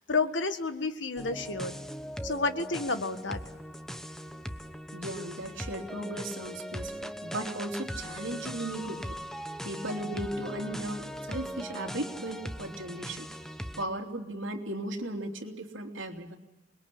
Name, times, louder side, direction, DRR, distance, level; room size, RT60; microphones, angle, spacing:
voice 1, 0.1-1.8 2.2-3.4, left 3 dB, 65° left, 9 dB, 1.7 m, -30 dB
sound 1, 1.2-13.8, equal, ahead, 1.0 m, -40 dB
voice 2, 4.9-9.2 9.6-13.2 13.8-16.4, right 1 dB, 75° right, 2 dB, 3.1 m, -36 dB
27.5 x 21.5 x 8.6 m, 1.0 s
head